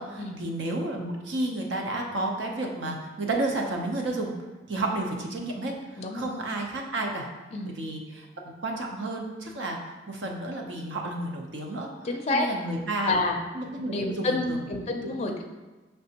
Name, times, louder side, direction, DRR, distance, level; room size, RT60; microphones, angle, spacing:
voice 1, 0.0-4.3 4.7-7.3 7.6-8.3 8.6-9.8 10.1-11.9 12.3-13.2 13.5-14.6, right 2 dB, 85° right, 1 dB, 0.7 m, -31 dB
voice 2, 6.0-6.3 7.5-7.7 12.0-12.5 13.0-13.4 13.8-15.4, left 2 dB, 35° left, 2 dB, 0.4 m, -28 dB
5.1 x 3.4 x 2.8 m, 1.2 s
head